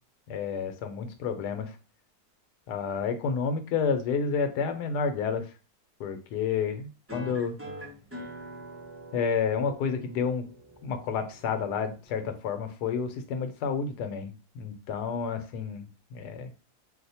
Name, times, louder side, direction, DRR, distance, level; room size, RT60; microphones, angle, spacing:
voice 1, 0.3-1.7 2.7-5.5 6.0-7.5 9.1-10.4 10.8-16.5, left 6 dB, 90° left, 8 dB, 1.2 m, -30 dB
sound 1, 7.1-12.1, equal, 20° right, 0.3 m, -44 dB
2.7 x 2.1 x 4.1 m, 0.33 s
omnidirectional pair, 1.7 m